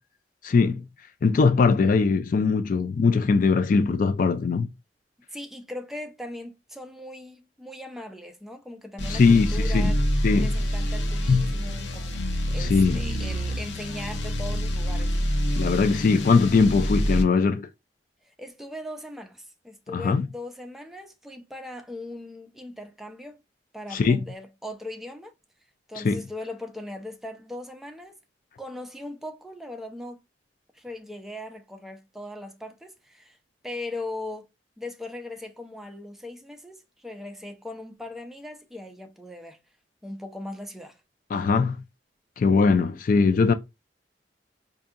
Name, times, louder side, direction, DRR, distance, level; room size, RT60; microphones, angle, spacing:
voice 1, 0.4-0.8 1.2-4.7 9.1-9.9 10.2-10.5 11.3-11.4 12.6-13.0 15.6-17.7 19.9-20.3 23.9-24.2 26.0-26.2 41.3-41.8 42.4-43.5, left 4 dB, 50° left, 0.3 m, -21 dB
voice 2, 5.3-10.0 10.3-12.2 12.5-15.1 18.4-23.4 23.7-25.3 25.9-28.2 28.6-30.2 30.7-33.4 33.6-34.5 34.8-39.6 40.0-41.0, left 1 dB, ahead, 0.5 m, -39 dB
sound 1, 9.0-17.2, equal, 85° left, 0.6 m, -27 dB
4.6 x 2.6 x 2.4 m
head